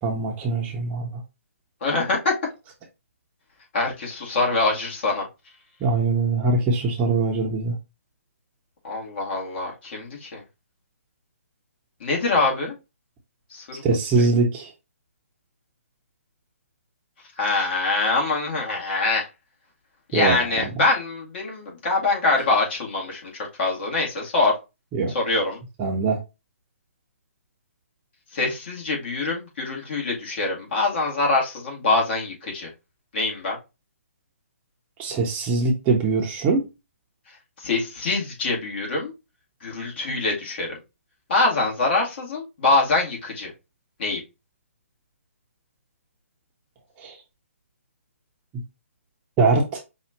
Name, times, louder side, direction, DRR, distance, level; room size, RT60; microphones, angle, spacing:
voice 1, 0.0-1.1 5.8-7.8 13.8-14.7 20.1-20.7 24.9-25.1 25.8-26.2 35.0-36.6 47.0-47.1 49.4-49.8, right 3 dB, 20° right, 0.7 m, -22 dB
voice 2, 1.8-2.3 3.7-5.3 8.8-10.4 12.0-12.7 13.5-13.9 14.2-14.3 17.4-19.3 20.1-24.5 25.1-25.6 28.3-32.7 33.1-33.6 37.6-39.1 39.6-40.8 41.3-43.5 44.0-44.2, left 3 dB, 45° left, 1.9 m, -24 dB
5.5 x 2.5 x 2.9 m
figure-of-eight pair, 145°, 8 cm